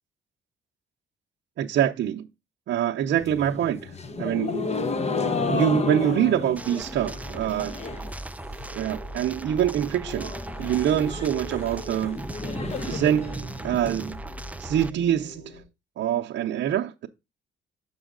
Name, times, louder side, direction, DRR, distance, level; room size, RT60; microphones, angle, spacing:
voice 1, 1.6-2.3 2.7-4.7 5.5-7.8 8.7-12.2 12.9-14.2 14.6-15.6 16.0-17.1, right 10 dB, 65° right, 0.7 m, -25 dB
sound 1, 3.1-8.2 8.4-9.0 9.3-9.4 9.6-9.7 10.0-14.0, left 4 dB, 35° left, 0.9 m, -32 dB
sound 2, 6.6-14.9, right 2 dB, 5° right, 0.4 m, -37 dB
sound 3, 8.4-15.6, left 2 dB, 70° left, 3.3 m, -47 dB
7.2 x 5.7 x 3.7 m
cardioid pair, 90°, 20 cm